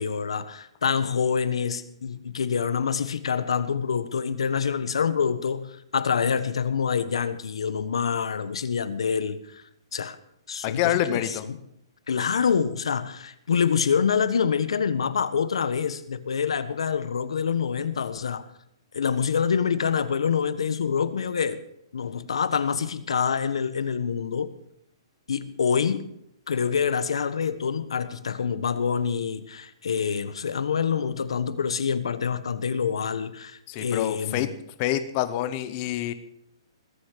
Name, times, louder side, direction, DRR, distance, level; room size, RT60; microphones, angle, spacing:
voice 1, 0.0-9.6 9.9-10.2 10.5-11.6 12.1-18.5 18.9-21.6 21.9-24.5 25.3-26.0 26.5-34.5, left 6 dB, 85° left, 1.4 m, -26 dB
voice 2, 10.6-11.5 33.7-34.5 34.8-36.1, left 12 dB, 20° left, 0.8 m, -26 dB
20.5 x 8.4 x 6.7 m
hypercardioid pair, 180°, 3 cm